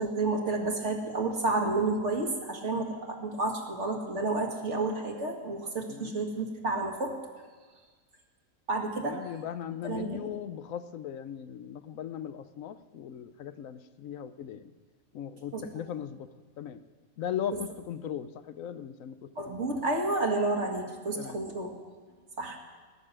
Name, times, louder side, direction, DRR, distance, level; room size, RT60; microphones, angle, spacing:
voice 1, 0.0-7.2 8.7-9.2 9.8-10.3 15.5-15.7 19.4-21.7 22.4-22.6, right 2 dB, 55° right, 1 dB, 2.2 m, -30 dB
voice 2, 9.0-14.7 15.1-16.3 16.6-16.8 17.2-19.6 21.1-21.4, left 9 dB, 75° left, 11 dB, 1.1 m, -38 dB
19.0 x 6.7 x 9.9 m, 1.4 s
omnidirectional pair, 1.4 m